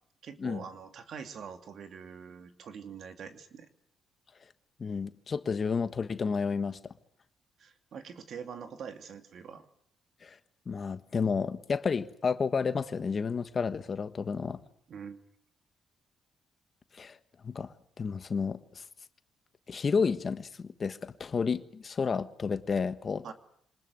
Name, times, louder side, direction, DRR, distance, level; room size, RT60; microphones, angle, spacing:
voice 1, 0.2-3.7 7.6-9.7 14.9-15.2 23.2-23.3, right 7 dB, 60° right, 2.5 m, -44 dB
voice 2, 4.8-6.9 10.2-10.4 10.7-14.6 16.9-17.2 17.4-18.8 19.7-23.3, left 5 dB, 40° left, 1.4 m, -31 dB
25.0 x 20.0 x 7.9 m
cardioid pair, 90°, 0 cm